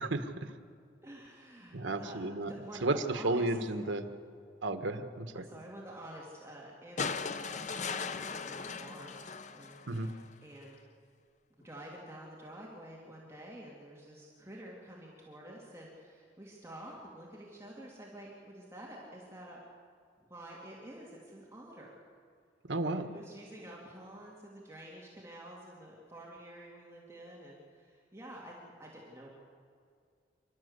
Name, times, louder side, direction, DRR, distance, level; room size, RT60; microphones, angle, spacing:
voice 1, 0.1-0.5 1.7-2.5 2.8-4.1 4.6-5.4 9.9-10.1 22.7-23.1, right 2 dB, 85° right, 8 dB, 1.4 m, -33 dB
voice 2, 1.0-3.6 5.3-10.8 11.6-19.6 20.2-22.0 22.9-29.3, right 1 dB, 15° right, -4 dB, 2.8 m, -49 dB
sound 1, 7.0-10.3 11.6-11.7, left 5 dB, 40° left, 0.7 m, -38 dB
27.5 x 13.0 x 8.2 m, 2.3 s
head